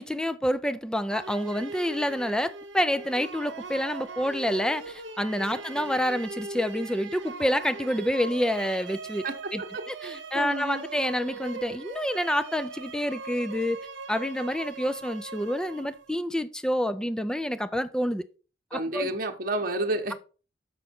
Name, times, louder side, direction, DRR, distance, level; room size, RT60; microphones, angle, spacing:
voice 1, 0.0-9.2 9.5-13.8 14.1-18.2 18.7-19.1, equal, 5° left, 0.4 m, -28 dB
sound 1, 1.1-16.2, right 3 dB, 75° right, 0.9 m, -40 dB
voice 2, 9.2-10.8 18.7-20.1, right 2 dB, 50° right, 0.9 m, -31 dB
6.4 x 5.5 x 4.3 m
head